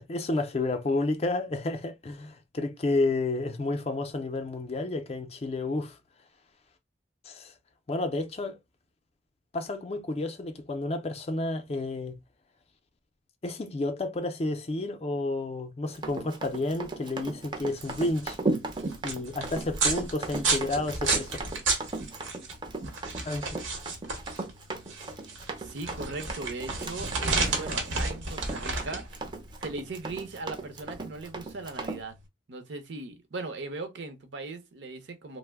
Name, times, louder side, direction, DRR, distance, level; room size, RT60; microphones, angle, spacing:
voice 1, 0.0-6.0 7.2-7.5 7.9-8.6 9.5-12.2 13.4-18.4 19.0-21.4 23.2-23.6, left 2 dB, 30° left, 0.4 m, -31 dB
Run, 15.9-32.0, right 2 dB, 25° right, 0.4 m, -37 dB
sound 1, 17.6-32.2, right 3 dB, 90° right, 0.9 m, -32 dB
voice 2, 25.6-29.1 29.6-32.2 32.5-35.4, right 3 dB, 65° right, 0.6 m, -38 dB
2.9 x 2.0 x 3.4 m
head